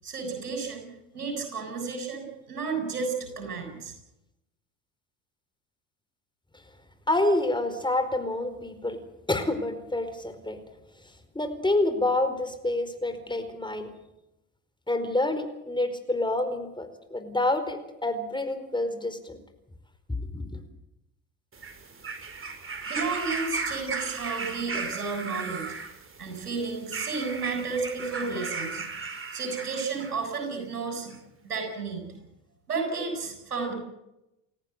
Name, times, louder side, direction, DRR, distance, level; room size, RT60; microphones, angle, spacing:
voice 1, 0.0-0.9 1.1-3.9 22.9-25.7 26.2-28.9 29.3-31.1 31.4-32.1 32.7-33.7, right 4 dB, 90° right, 4 dB, 7.3 m, -32 dB
voice 2, 7.1-9.0 9.3-10.6 11.3-13.9 14.9-19.4 20.1-20.4, left 2 dB, 10° left, 8 dB, 4.6 m, -28 dB
sound 1, 21.5-30.2 31.1-31.2, right 4 dB, 30° right, 4.5 m, -36 dB
30.0 x 15.0 x 8.0 m, 0.89 s
hypercardioid pair, 65°, 44 cm